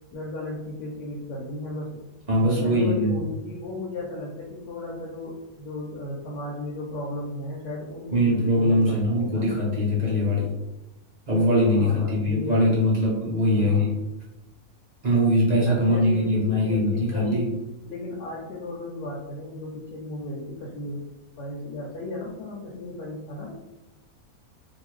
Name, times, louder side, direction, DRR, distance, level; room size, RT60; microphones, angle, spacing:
voice 1, 0.1-2.0 2.4-9.5 11.6-12.6 13.5-13.9 15.6-17.5 17.8-21.0 21.4-23.6, left 1 dB, 90° left, -4 dB, 1.2 m, -35 dB
voice 2, 2.3-3.1 8.1-10.5 11.3-14.0 15.0-17.5, left 1 dB, 45° right, -6 dB, 0.5 m, -22 dB
2.6 x 2.5 x 3.1 m, 0.97 s
omnidirectional pair, 1.6 m